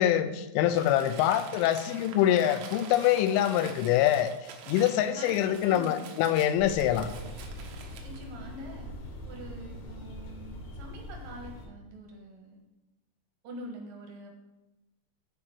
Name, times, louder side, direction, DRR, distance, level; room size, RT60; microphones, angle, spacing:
voice 1, 0.0-4.3 4.7-7.1, left 11 dB, 85° left, 10 dB, 3.0 m, -25 dB
Crumpling crinkling, 0.7-8.3, right 6 dB, 85° right, 3.7 m, -47 dB
voice 2, 5.1-6.1 8.0-8.9 9.3-12.6 13.4-14.4, equal, 65° right, 1 dB, 2.2 m, -45 dB
sound 1, 6.6-11.7, left 1 dB, 65° left, 1.8 m, -42 dB
9.5 x 4.4 x 7.5 m, 1.0 s
omnidirectional pair, 5.7 m